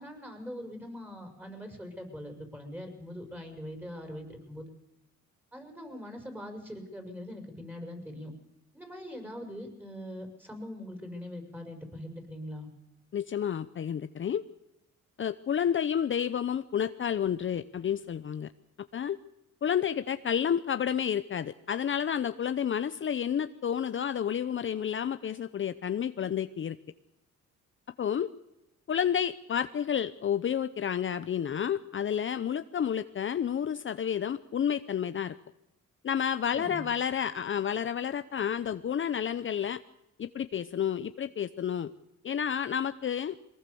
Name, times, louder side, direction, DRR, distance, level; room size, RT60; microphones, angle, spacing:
voice 1, 0.0-4.7 5.5-8.3 8.7-12.7 36.5-36.9, equal, 5° right, 4 dB, 6.2 m, -42 dB
voice 2, 13.1-14.4 15.2-18.5 18.9-19.2 19.6-26.8 28.0-28.3 28.9-35.3 36.0-39.8 40.2-41.9 42.2-43.4, left 8 dB, 40° left, 11 dB, 0.7 m, -30 dB
23.0 x 19.5 x 7.0 m, 0.91 s
cardioid pair, 90°, 30 cm